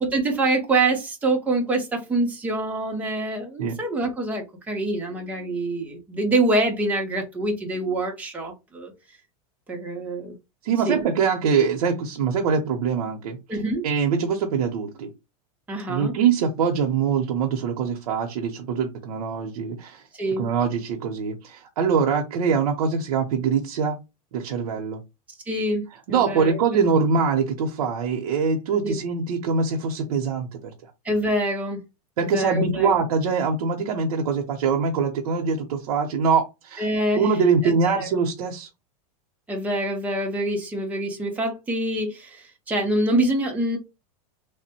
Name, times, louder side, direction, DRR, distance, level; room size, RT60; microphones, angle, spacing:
voice 1, 0.0-8.9 9.7-10.4 10.9-11.0 13.5-13.8 15.7-16.1 20.2-20.5 25.5-26.6 28.8-29.0 31.0-31.8 32.2-33.0 36.8-37.3 37.9-38.1 39.5-43.8, right 2 dB, 10° right, 0.8 m, -25 dB
voice 2, 10.6-13.6 13.8-15.1 15.8-20.0 20.4-24.0 24.3-25.0 26.1-30.9 32.2-36.9 37.2-38.7, right 5 dB, 80° right, 0.7 m, -23 dB
3.3 x 2.1 x 4.2 m
supercardioid pair, 160°, 19 cm